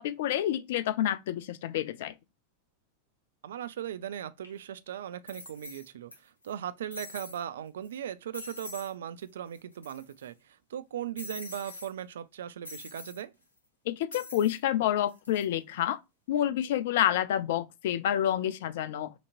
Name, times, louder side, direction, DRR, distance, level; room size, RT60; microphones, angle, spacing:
voice 1, 0.0-2.1 13.9-16.0 16.3-19.1, left 11 dB, 55° left, 0.4 m, -28 dB
voice 2, 3.4-13.3, right 10 dB, 60° right, 0.4 m, -38 dB
sound 1, 4.4-4.5 5.3-6.1 6.4-6.5 6.9-7.4 7.8-8.0 8.3-8.9 9.2-9.3 9.5-10.3 11.2-11.9 12.6-13.2 14.1-14.6 15.1-15.4, left 2 dB, 75° left, 1.9 m, -44 dB
5.9 x 2.9 x 2.4 m
figure-of-eight pair, 90°, 0 cm